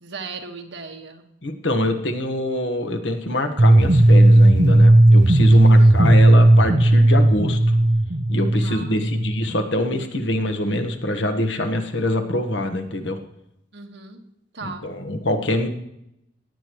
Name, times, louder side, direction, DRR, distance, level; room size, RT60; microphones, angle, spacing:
voice 1, 0.0-1.2 5.6-5.9 8.6-9.0 13.7-14.2 14.5-14.8, right 4 dB, 70° right, 4 dB, 1.6 m, -37 dB
voice 2, 1.4-7.7 8.3-13.2 14.6-15.7, left 1 dB, 75° left, 6 dB, 1.4 m, -24 dB
sound 1, 3.6-9.6, right 1 dB, 40° right, 0.7 m, -14 dB
17.0 x 9.7 x 3.1 m, 0.79 s
head